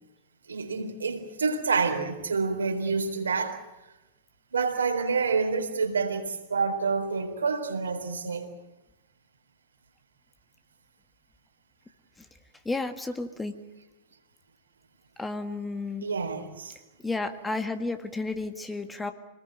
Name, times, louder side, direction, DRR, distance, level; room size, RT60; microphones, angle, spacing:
voice 1, 0.5-3.6 4.5-8.5 16.0-16.8, right 4 dB, 75° right, 5 dB, 3.9 m, -28 dB
voice 2, 12.7-13.7 15.2-16.1 17.0-19.1, left 3 dB, 10° left, 7 dB, 1.8 m, -32 dB
26.0 x 20.0 x 7.9 m, 1.0 s
figure-of-eight pair, 95°, 0 cm